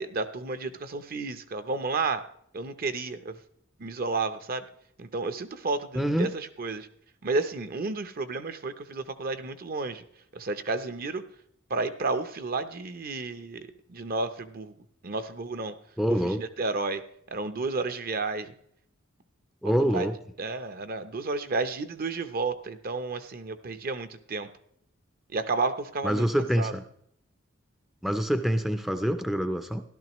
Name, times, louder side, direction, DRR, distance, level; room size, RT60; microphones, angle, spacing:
voice 1, 0.0-2.2 2.5-3.4 3.8-4.6 5.0-6.9 7.2-10.0 10.3-11.2 11.7-14.7 15.0-15.7 16.2-17.0 17.3-18.5 19.8-20.1 20.4-24.5 25.3-26.3 26.6-26.7, right 3 dB, 50° right, 11 dB, 0.7 m, -31 dB
voice 2, 5.9-6.3 16.0-16.4 19.6-20.2 26.0-26.8 28.0-29.8, equal, ahead, 8 dB, 0.5 m, -26 dB
14.0 x 12.0 x 3.0 m, 0.69 s
head